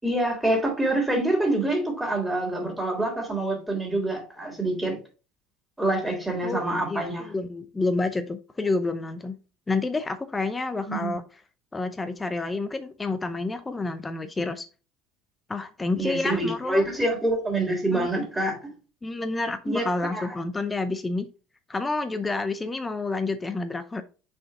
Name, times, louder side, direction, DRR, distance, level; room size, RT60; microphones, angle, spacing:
voice 1, 0.0-5.0 5.8-7.3 10.9-11.2 16.0-18.7 19.7-19.9 20.1-20.3, right 1 dB, 5° right, 3.7 m, -26 dB
voice 2, 6.4-9.4 9.7-11.2 11.7-14.6 15.5-16.8 17.9-18.1 19.0-21.3 21.7-24.0, left 3 dB, 20° left, 0.7 m, -29 dB
6.0 x 5.1 x 3.7 m
figure-of-eight pair, 65°, 0 cm